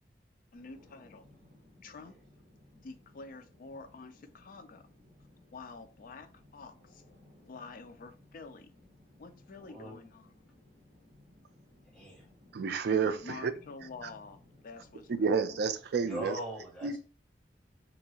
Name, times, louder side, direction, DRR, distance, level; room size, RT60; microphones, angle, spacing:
voice 1, 0.5-1.3 1.8-2.2 2.8-4.9 5.5-7.0 7.5-8.7 9.2-10.3 13.2-15.6, left 4 dB, 50° left, 0.3 m, -48 dB
sound 1, 0.5-15.5, left 1 dB, 25° right, 1.3 m, -61 dB
voice 2, 9.6-9.9 11.9-12.3 16.0-16.9, right 1 dB, ahead, 1.0 m, -40 dB
voice 3, 12.5-13.5 14.0-14.1 15.1-16.4 16.8-17.0, right 5 dB, 60° right, 0.3 m, -30 dB
2.9 x 2.6 x 2.8 m
head